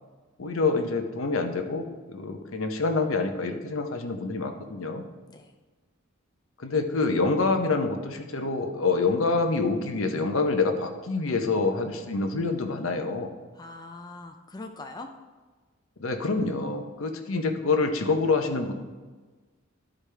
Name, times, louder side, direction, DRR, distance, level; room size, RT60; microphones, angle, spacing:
voice 1, 0.4-5.0 6.6-13.3 16.0-18.7, left 3 dB, 70° left, 5 dB, 0.8 m, -26 dB
voice 2, 13.6-15.1, left 2 dB, 20° left, 4 dB, 0.4 m, -42 dB
12.0 x 4.9 x 3.3 m, 1.3 s
head